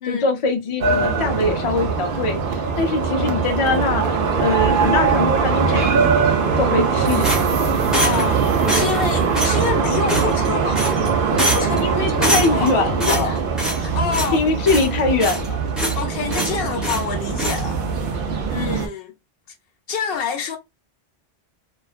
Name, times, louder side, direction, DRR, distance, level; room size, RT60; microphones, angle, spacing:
voice 1, 0.0-6.1 6.6-7.3 11.8-13.3 14.3-15.6, left 3 dB, 45° left, 0.4 m, -22 dB
sound 1, 0.8-18.9, right 5 dB, 60° right, 0.8 m, -21 dB
sound 2, 5.8-13.2, right 3 dB, 85° right, 1.1 m, -37 dB
sound 3, 7.2-8.3 8.7-9.0 9.3-9.6 10.1-10.5 10.7-11.1 11.4-11.8 12.2-12.7 13.0-13.9 14.1-14.4 14.7-15.5 15.8-16.0 16.3-17.1 17.4-17.6, equal, ahead, 0.7 m, -24 dB
voice 2, 7.7-10.9 11.5-13.4 13.8-14.4 16.0-17.8 18.5-19.1 19.9-20.6, left 6 dB, 65° left, 0.8 m, -27 dB
2.4 x 2.2 x 2.3 m
omnidirectional pair, 1.1 m